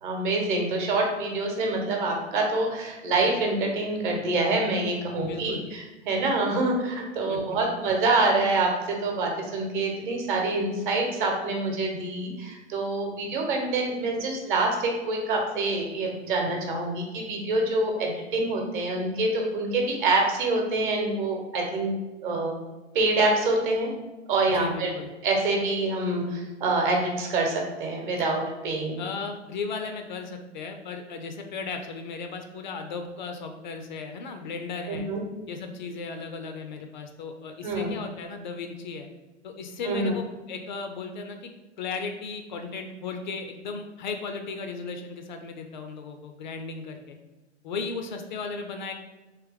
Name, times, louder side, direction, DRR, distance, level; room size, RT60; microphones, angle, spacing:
voice 1, 0.0-21.9 22.2-22.6 22.9-23.9 24.3-24.9 25.2-29.0 34.9-35.2 37.6-37.9 39.8-40.2, right 2 dB, 45° right, 1 dB, 1.0 m, -26 dB
voice 2, 5.2-5.7 7.3-7.8 24.5-25.1 29.0-35.1 35.5-39.1 39.4-41.5 41.8-47.2 47.6-48.9, left 4 dB, 45° left, 5 dB, 0.4 m, -36 dB
3.1 x 3.0 x 3.4 m, 1.1 s
figure-of-eight pair, 100°, 34 cm